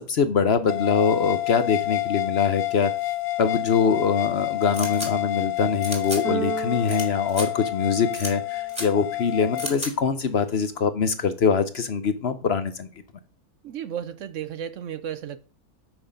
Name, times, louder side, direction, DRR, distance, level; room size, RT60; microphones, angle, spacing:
voice 1, 0.0-2.9 3.4-12.9, left 5 dB, 55° left, 0.9 m, -23 dB
sound 1, 0.7-9.7, left 17 dB, 85° left, 1.1 m, -28 dB
sound 2, 4.7-5.1 5.8-6.2 6.9-7.0 7.3-7.5 8.1-8.3 8.7-8.9 9.6-9.9, equal, 5° right, 2.7 m, -32 dB
Keyboard (musical), 6.2-8.4, right 8 dB, 85° right, 1.7 m, -35 dB
voice 2, 13.6-15.4, right 9 dB, 65° right, 0.9 m, -33 dB
9.2 x 6.4 x 5.1 m
omnidirectional pair, 1.5 m